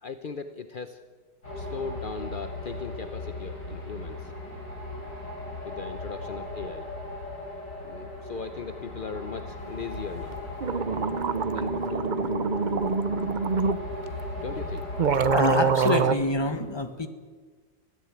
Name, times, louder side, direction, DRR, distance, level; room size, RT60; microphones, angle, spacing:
voice 1, 0.0-1.0 1.6-4.3 5.6-6.9 7.8-10.4 11.5-12.1 14.4-14.9, left 5 dB, 50° left, 9 dB, 0.6 m, -38 dB
sound 1, 1.4-15.7, left 2 dB, 65° left, 6.3 m, -37 dB
sound 2, 10.3-10.4 10.6-13.8 14.6-14.7 15.0-16.1, right 5 dB, 85° right, 0.4 m, -25 dB
voice 2, 15.3-17.1, left 2 dB, 15° left, 8 dB, 1.3 m, -27 dB
24.0 x 16.0 x 8.9 m, 1.5 s
omnidirectional pair, 2.0 m